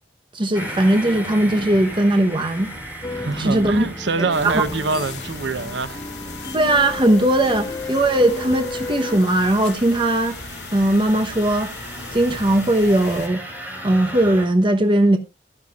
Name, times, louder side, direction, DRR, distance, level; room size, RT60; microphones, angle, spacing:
voice 1, 0.3-2.7 3.1-3.9 4.2-4.6 6.5-10.4 10.7-11.7 12.1-13.4 13.8-15.2, right 1 dB, 30° right, 1.0 m, -19 dB
sound 1, 0.5-14.5, equal, 10° right, 4.4 m, -37 dB
sound 2, 3.0-9.2, left 2 dB, 20° left, 1.0 m, -33 dB
voice 2, 3.1-6.0, right 3 dB, 85° right, 0.9 m, -25 dB
sound 3, 4.3-13.3, left 4 dB, 65° left, 2.5 m, -38 dB
16.0 x 11.0 x 2.4 m
head